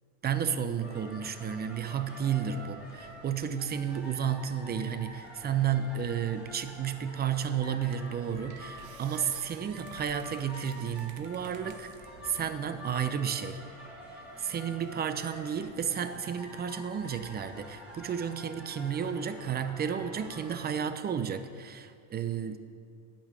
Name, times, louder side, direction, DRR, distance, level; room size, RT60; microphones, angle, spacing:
voice 1, 0.2-11.9 12.2-13.6 14.4-22.6, right 8 dB, 25° right, 10 dB, 0.6 m, -32 dB
sound 1, 0.8-20.7, equal, 5° right, 3.4 m, -47 dB
sound 2, 7.3-7.4 7.9-8.2 8.5-12.1 12.6-13.3, right 10 dB, 80° right, 1.0 m, -53 dB
11.5 x 5.4 x 8.9 m, 2.3 s
supercardioid pair, 110°, 41 cm